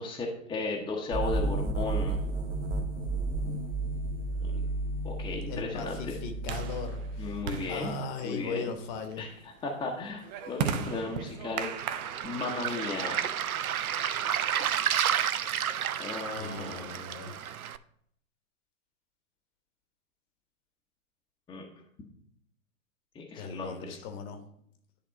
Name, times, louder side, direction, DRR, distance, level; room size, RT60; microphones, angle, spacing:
voice 1, 0.0-2.2 4.4-4.6 5.0-6.1 7.2-7.9 8.2-8.7 9.2-9.3 9.6-11.7 12.2-13.3 16.0-16.8 21.5-21.6 23.1-24.0, left 3 dB, 10° left, -1 dB, 0.9 m, -35 dB
sound 1, 1.1-7.9, right 2 dB, 60° right, 1.4 m, -33 dB
sound 2, 3.8-14.2, right 7 dB, 35° right, 0.6 m, -39 dB
voice 2, 5.5-7.4 7.7-9.2 16.4-17.3 23.4-24.4, left 4 dB, 35° left, 6 dB, 1.1 m, -38 dB
Waves surf, 11.8-17.8, right 9 dB, 85° right, 0.5 m, -31 dB
10.5 x 3.5 x 5.2 m, 0.68 s
figure-of-eight pair, 115°, 42 cm